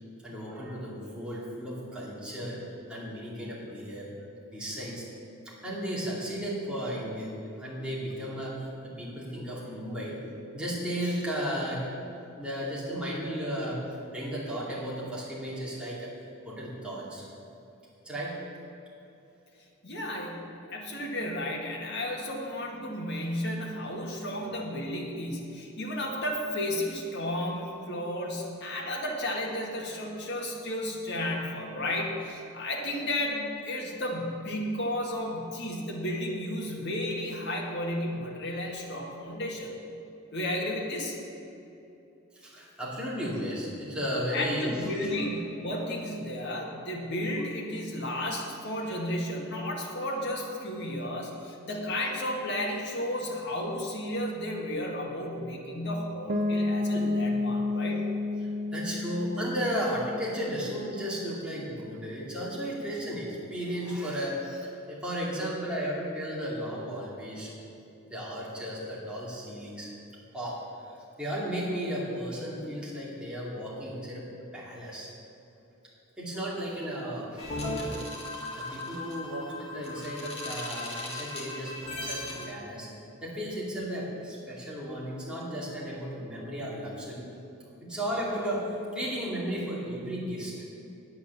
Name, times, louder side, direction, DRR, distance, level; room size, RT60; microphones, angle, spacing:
voice 1, 0.2-2.6 2.9-4.1 4.5-5.0 5.4-7.3 7.6-10.2 10.5-11.8 12.4-13.8 14.1-16.1 16.4-17.3 18.0-18.4 42.3-45.3 58.4-67.5 68.1-69.9 70.3-70.6 70.8-74.2 74.5-75.1 76.2-78.0 78.6-82.9 83.2-87.3 87.8-90.6, equal, 5° right, -7 dB, 2.5 m, -34 dB
voice 2, 19.8-39.7 40.3-41.2 44.3-58.0, left 1 dB, 55° left, -1 dB, 2.1 m, -33 dB
Piano, 56.3-62.0, left 2 dB, 35° right, 0.6 m, -31 dB
sound 1, 77.4-82.5, left 1 dB, 30° left, 2.2 m, -37 dB
9.8 x 8.7 x 7.1 m, 2.8 s
head